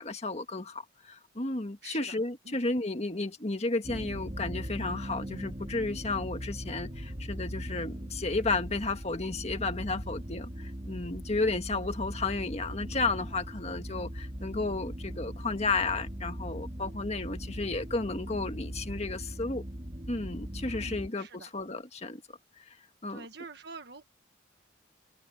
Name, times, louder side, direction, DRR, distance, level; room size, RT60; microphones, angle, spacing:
voice 1, 0.0-19.6 20.1-22.2 23.0-23.3, left 3 dB, 35° left, 1.7 m, -33 dB
voice 2, 1.8-2.2 2.5-2.6 20.6-21.5 23.1-24.0, right 4 dB, 60° right, 1.4 m, -47 dB
sound 1, 3.8-21.1, equal, 30° right, 2.6 m, -39 dB
head